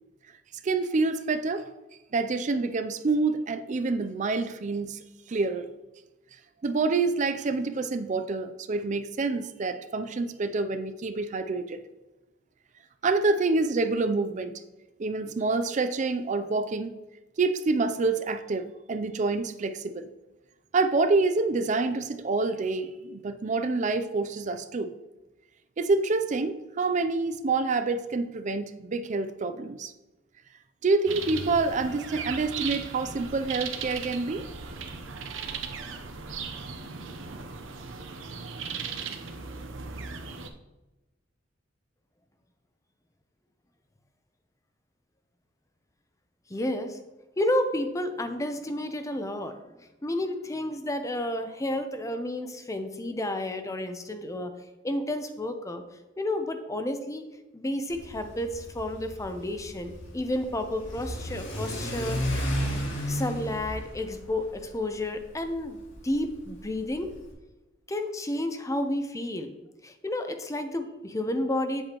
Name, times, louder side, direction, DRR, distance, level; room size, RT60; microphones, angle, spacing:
voice 1, 0.6-1.7 2.1-5.0 5.3-5.7 6.6-11.8 13.0-14.5 15.0-16.9 17.4-20.1 20.7-24.9 25.8-29.9 30.8-34.5, right 3 dB, 40° right, 9 dB, 0.4 m, -27 dB
sound 1, 31.1-40.5, right 5 dB, 85° right, 0.8 m, -37 dB
voice 2, 46.5-47.0 47.4-49.6 50.0-54.5 54.8-55.8 56.2-57.3 57.5-62.6 63.1-67.1 67.9-69.5 69.8-71.8, left 1 dB, 15° left, 7 dB, 0.6 m, -31 dB
Car / Accelerating revving vroom, 57.9-67.3, equal, 70° left, 2.8 m, -34 dB
8.6 x 7.9 x 3.0 m, 1.0 s
head